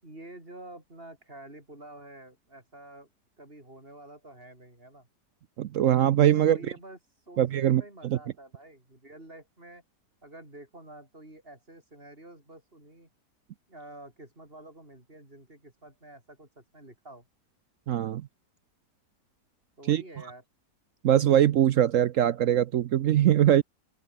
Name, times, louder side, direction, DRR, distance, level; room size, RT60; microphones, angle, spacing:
voice 1, 0.0-3.1 3.4-5.1 6.4-7.0 7.3-9.8 10.2-13.1 13.7-17.3 19.8-20.4, right 1 dB, 30° right, 8.1 m, -48 dB
voice 2, 5.6-6.6 7.4-8.2 17.9-18.3 19.9-20.0 21.0-23.6, right 11 dB, 65° right, 0.8 m, -22 dB
open air
omnidirectional pair, 1.8 m